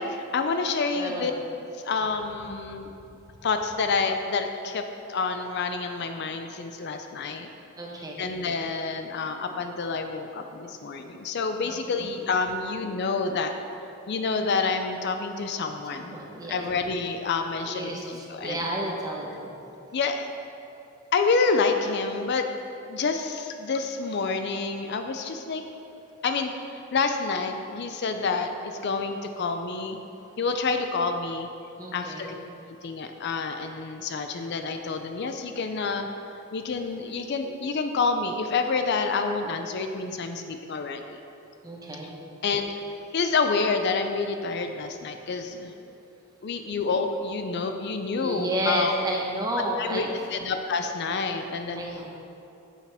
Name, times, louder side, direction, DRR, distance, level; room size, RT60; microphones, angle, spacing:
voice 1, 0.3-1.3 1.8-2.9 3.4-4.8 5.1-7.5 8.2-13.5 14.1-16.2 16.5-18.6 19.9-20.3 21.1-22.4 22.9-25.6 26.2-26.5 26.9-30.0 30.4-31.5 31.9-32.3 32.8-36.1 36.5-41.2 42.4-42.7 43.1-45.7 46.4-48.9 49.8-50.1 50.3-51.9, left 4 dB, 50° left, 6 dB, 0.4 m, -28 dB
voice 2, 0.9-1.3 7.8-8.4 11.6-12.0 15.9-16.6 17.7-19.6 31.8-32.3 41.6-42.1 48.2-50.1 51.8-52.1, right 1 dB, 15° right, -1 dB, 1.0 m, -31 dB
9.9 x 7.2 x 3.5 m, 2.8 s
head